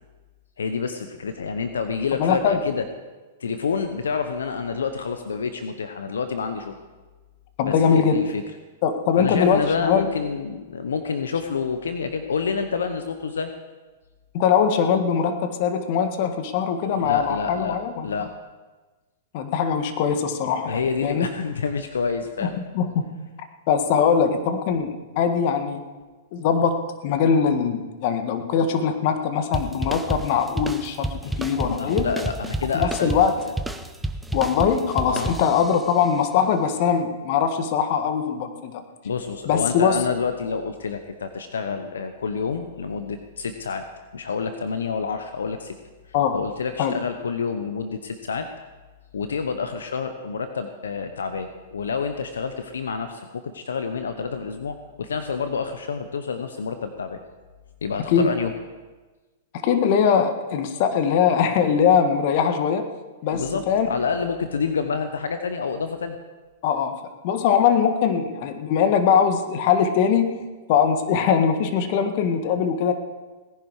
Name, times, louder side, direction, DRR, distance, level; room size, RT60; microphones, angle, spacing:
voice 1, 0.6-2.9 3.4-6.7 7.6-8.4 9.2-13.5 16.8-17.8 18.0-18.3 20.6-22.6 31.6-33.5 35.1-35.4 39.0-43.9 44.1-45.8 46.3-48.5 49.1-57.2 57.8-58.5 63.3-66.2, left 5 dB, 85° left, 8 dB, 0.9 m, -28 dB
voice 2, 2.2-2.6 7.6-8.2 8.8-10.1 14.3-18.1 19.3-21.3 22.4-23.0 23.7-25.8 26.3-32.1 32.7-33.3 34.3-38.7 39.4-40.0 46.1-46.4 46.8-46.9 58.1-58.3 59.5-62.9 63.2-63.9 66.6-70.4 70.7-72.9, left 7 dB, 50° left, 8 dB, 1.6 m, -21 dB
sound 1, 29.5-35.9, right 1 dB, 5° right, 0.9 m, -31 dB
18.0 x 10.5 x 4.9 m, 1.3 s
hypercardioid pair, 115°, 0 cm